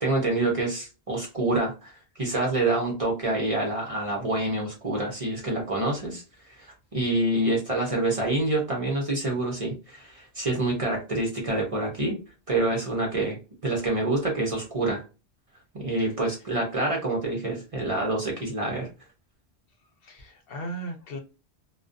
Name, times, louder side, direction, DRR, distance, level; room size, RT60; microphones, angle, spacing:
voice 1, 0.0-6.2 6.6-12.2 12.5-13.4 13.6-15.0 15.7-18.9, right 2 dB, 35° right, -1 dB, 0.7 m, -27 dB
voice 2, 20.0-21.2, right 1 dB, 65° left, 4 dB, 0.7 m, -37 dB
2.3 x 2.2 x 2.5 m, 0.31 s
omnidirectional pair, 1.1 m